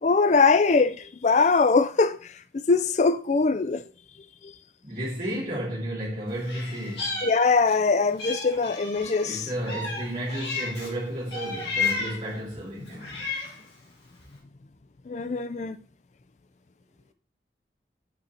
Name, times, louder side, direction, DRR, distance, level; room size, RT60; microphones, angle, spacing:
voice 1, 0.0-3.8 4.4-4.5 7.2-9.5 12.8-12.9 15.1-15.8, left 4 dB, 40° left, 0.4 m, -22 dB
voice 2, 4.8-7.2 9.2-13.2, right 1 dB, 50° right, 2.7 m, -32 dB
Meow, 6.4-7.8 8.2-10.9 11.3-12.3 12.9-13.7, left 4 dB, 75° left, 2.9 m, -33 dB
7.1 x 4.0 x 4.3 m
head